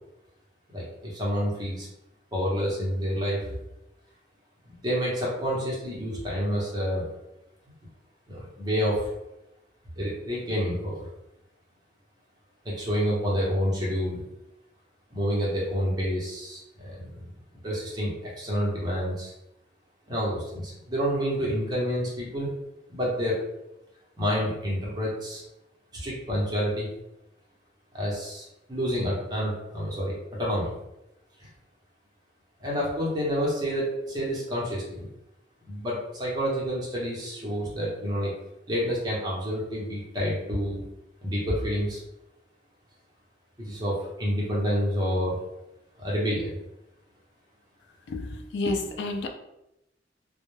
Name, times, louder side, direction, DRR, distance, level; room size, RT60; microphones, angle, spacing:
voice 1, 0.7-1.9 2.3-3.5 4.7-7.1 8.3-9.1 10.0-11.1 12.6-14.2 15.1-17.2 17.6-19.3 20.1-22.5 22.9-23.4 24.2-25.4 25.9-26.9 27.9-30.7 31.4-31.5 32.6-35.1 35.6-38.3 38.7-40.8 41.2-42.0 43.6-45.3 46.0-46.6, equal, 20° right, -5 dB, 0.7 m, -28 dB
voice 2, 48.1-49.3, left 2 dB, 70° left, 4 dB, 0.3 m, -30 dB
2.2 x 2.1 x 3.1 m, 0.88 s
head